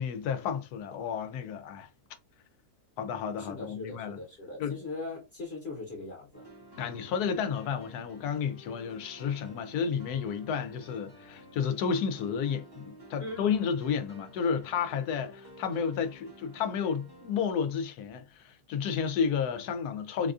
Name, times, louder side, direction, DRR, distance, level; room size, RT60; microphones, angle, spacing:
voice 1, 0.0-1.9 3.0-4.2 4.6-4.8 6.8-20.3, left 7 dB, 80° left, 1.1 m, -31 dB
voice 2, 3.4-6.5 13.2-13.5, left 2 dB, 45° left, 1.2 m, -40 dB
sound 1, 6.3-17.5, equal, 20° right, 0.8 m, -52 dB
4.0 x 2.3 x 2.5 m
omnidirectional pair, 1.6 m